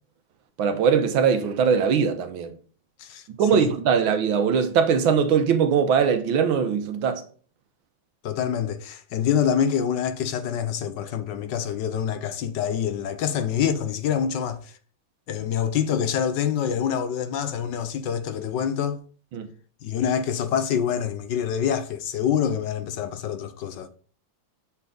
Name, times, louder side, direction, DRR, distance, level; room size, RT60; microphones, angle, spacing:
voice 1, 0.6-2.5 3.4-7.2 19.3-19.5, right 7 dB, 85° right, 1.7 m, -21 dB
voice 2, 8.2-14.7 15.3-19.0 19.8-23.9, left 8 dB, 70° left, 1.3 m, -26 dB
7.0 x 5.7 x 3.8 m
omnidirectional pair, 2.2 m